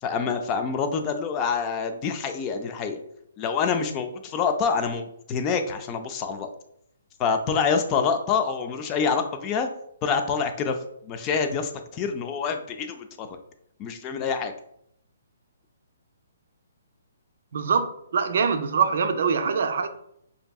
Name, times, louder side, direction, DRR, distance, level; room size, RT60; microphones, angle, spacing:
voice 1, 0.0-3.0 3.4-6.5 7.2-9.7 10.0-10.8 11.0-13.4 13.8-14.5, left 5 dB, 20° left, 0.3 m, -26 dB
voice 2, 17.5-19.9, right 6 dB, 55° right, 0.4 m, -24 dB
5.5 x 2.6 x 2.3 m
hypercardioid pair, 170°, 0 cm